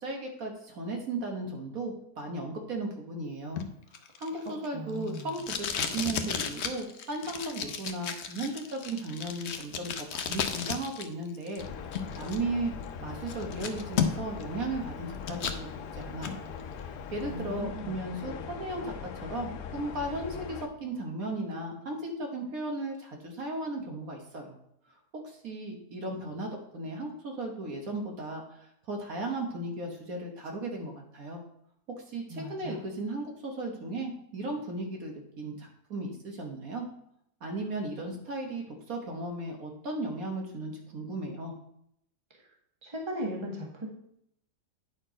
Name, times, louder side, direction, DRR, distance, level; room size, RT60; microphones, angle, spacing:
voice 1, 0.0-3.6 4.2-11.7 12.2-12.7 13.0-15.7 15.9-16.4 17.1-24.6 25.1-31.4 31.9-36.9 37.4-41.5, right 2 dB, 60° right, 1 dB, 1.6 m, -36 dB
Packing tape duct tape, 3.6-11.1 11.3-12.4 12.8-12.9 13.3-14.4 14.8-15.6 16.0-16.4, left 7 dB, 55° left, 0.8 m, -34 dB
voice 2, 4.7-5.3 17.2-18.0 32.3-32.8 42.8-43.9, equal, 20° right, 0 dB, 1.4 m, -37 dB
sound 1, 11.6-20.7, left 6 dB, 85° left, 1.2 m, -41 dB
9.2 x 4.4 x 4.9 m, 0.73 s
omnidirectional pair, 1.7 m